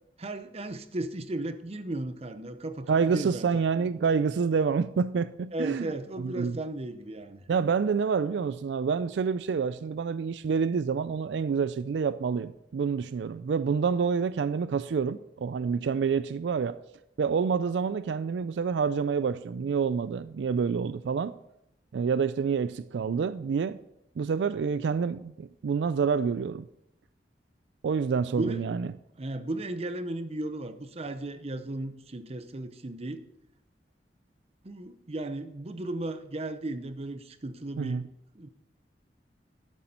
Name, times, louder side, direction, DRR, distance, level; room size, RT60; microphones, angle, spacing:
voice 1, 0.2-3.5 5.5-7.4 28.3-28.6 29.2-33.2 34.6-38.0 38.3-38.5, right 2 dB, 35° right, 0.7 m, -35 dB
voice 2, 2.9-5.9 6.2-6.6 7.5-16.8 17.2-21.3 21.9-23.8 24.2-26.6 27.8-28.9 37.8-38.0, right 5 dB, 80° right, 0.4 m, -28 dB
12.0 x 8.1 x 4.3 m
head